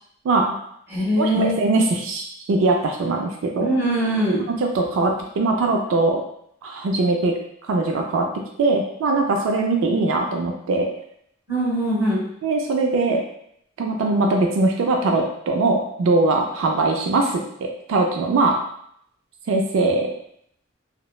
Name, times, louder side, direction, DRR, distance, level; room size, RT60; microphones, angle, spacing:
voice 1, 0.2-0.6 1.2-3.8 4.5-6.2 6.6-7.3 7.7-8.3 8.6-10.9 12.4-13.2 13.8-18.6 19.5-20.1, right 3 dB, 75° right, 2 dB, 0.3 m, -21 dB
voice 2, 0.9-1.6 3.6-4.4 11.5-12.2, right 1 dB, 10° right, -10 dB, 1.1 m, -21 dB
2.9 x 2.0 x 2.3 m, 0.71 s
head